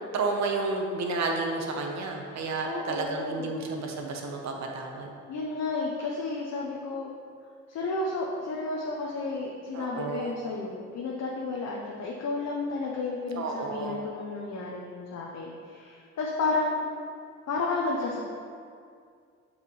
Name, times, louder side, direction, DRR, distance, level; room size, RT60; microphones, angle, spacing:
voice 1, 0.0-5.1 9.7-10.4 13.3-14.0, right 3 dB, 65° right, 2 dB, 1.0 m, -31 dB
voice 2, 2.3-3.5 5.3-7.1 7.7-16.8 17.5-18.2, left 3 dB, 60° left, -2 dB, 0.9 m, -32 dB
6.9 x 5.7 x 3.2 m, 2.2 s
cardioid pair, 90°, 30 cm